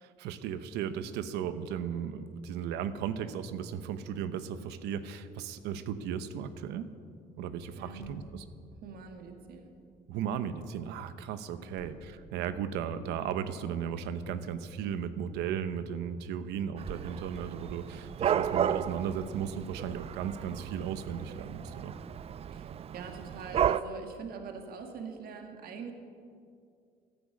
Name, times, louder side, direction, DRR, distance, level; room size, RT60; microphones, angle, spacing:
voice 1, 0.0-6.9 7.4-8.4 10.1-21.9, right 8 dB, 90° right, 12 dB, 0.9 m, -36 dB
sound 1, 7.4-10.5 11.7-18.7, left 2 dB, 85° left, 2.9 m, -52 dB
voice 2, 7.8-8.1 8.8-9.7 11.6-12.0 22.5-25.9, right 5 dB, 60° right, 4 dB, 1.8 m, -44 dB
Dog / Cat, 16.8-23.8, right 9 dB, 35° right, 0.4 m, -33 dB
12.5 x 10.5 x 8.6 m, 2.3 s
cardioid pair, 110°, 17 cm